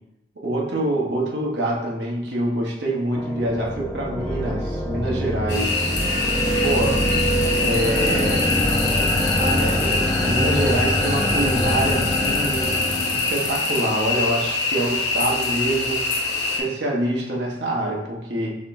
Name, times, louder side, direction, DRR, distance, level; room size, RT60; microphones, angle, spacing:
voice 1, 0.3-5.8 6.6-7.0 7.5-8.5 9.4-16.1 16.4-18.5, right 1 dB, 75° right, -3 dB, 1.1 m, -25 dB
sound 1, 3.1-13.7, equal, 20° left, 0.6 m, -24 dB
sound 2, 5.5-16.6, left 3 dB, 75° left, 0.8 m, -24 dB
5.0 x 3.6 x 2.6 m, 0.89 s
head